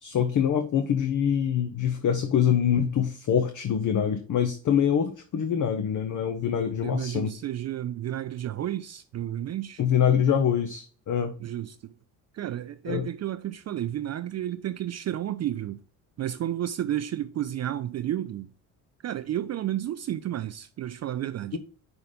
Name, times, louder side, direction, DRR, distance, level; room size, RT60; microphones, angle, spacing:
voice 1, 0.0-7.3 9.8-11.3 12.9-13.1 21.5-21.6, left 8 dB, 40° left, 0.8 m, -25 dB
voice 2, 6.8-9.8 11.4-11.9 12.3-15.8 16.2-18.5 19.0-21.6, right 12 dB, 35° right, 0.5 m, -32 dB
5.9 x 3.9 x 5.1 m
hypercardioid pair, 60°, 46 cm